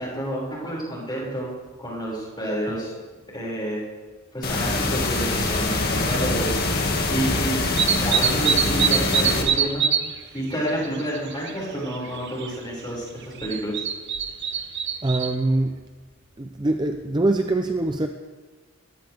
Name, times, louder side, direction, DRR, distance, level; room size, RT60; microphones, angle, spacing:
voice 1, 0.0-1.5 1.8-2.9 3.3-3.8 4.3-6.6 7.1-7.6 8.0-9.8 10.3-13.7, right 1 dB, 20° left, -5 dB, 5.7 m, -29 dB
sound 1, 4.4-9.4, left 2 dB, 45° left, 2.0 m, -24 dB
sound 2, 7.8-10.1 10.4-11.6 11.9-12.5 13.4-15.3, right 7 dB, 50° right, 1.0 m, -23 dB
voice 2, 15.0-15.8 16.4-18.1, right 2 dB, 20° right, 6 dB, 0.5 m, -24 dB
21.0 x 16.0 x 3.5 m, 1.3 s
head